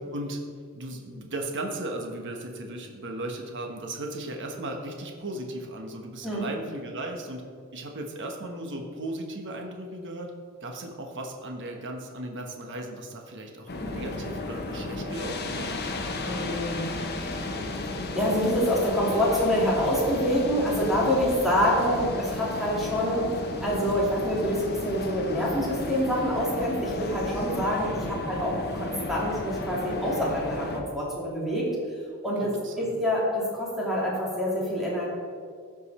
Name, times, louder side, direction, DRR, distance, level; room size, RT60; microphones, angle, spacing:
voice 1, 0.7-7.4 7.7-10.3 10.6-15.7 27.9-28.2 32.4-32.9, right 1 dB, 55° right, 2 dB, 1.3 m, -36 dB
sound 1, 13.7-30.8, left 2 dB, 45° left, 1.0 m, -33 dB
voice 2, 16.2-17.5 18.1-31.7 32.2-35.1, equal, ahead, -6 dB, 2.8 m, -26 dB
15.5 x 5.3 x 4.3 m, 2.1 s
head